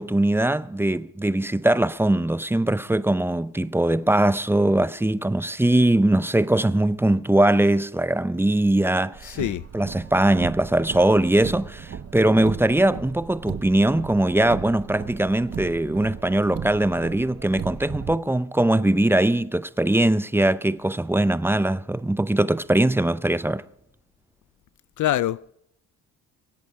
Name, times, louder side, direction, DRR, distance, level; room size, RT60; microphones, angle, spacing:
voice 1, 0.0-9.4 9.7-23.6, right 1 dB, 5° right, 0.5 m, -21 dB
Car, 9.1-18.1, right 7 dB, 40° right, 1.0 m, -36 dB
voice 2, 9.2-9.6 25.0-25.5, left 13 dB, 55° left, 0.4 m, -25 dB
24.5 x 8.3 x 4.9 m
supercardioid pair, 60°, 38 cm